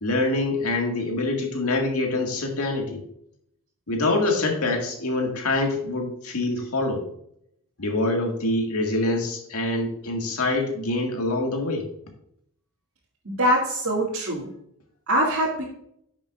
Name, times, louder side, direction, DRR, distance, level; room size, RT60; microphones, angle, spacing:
voice 1, 0.0-3.0 3.9-7.0 7.8-11.9, left 2 dB, 75° left, 2 dB, 2.0 m, -25 dB
voice 2, 13.3-14.5 15.1-15.6, equal, 65° right, -7 dB, 2.3 m, -23 dB
10.5 x 7.2 x 2.5 m, 0.72 s
head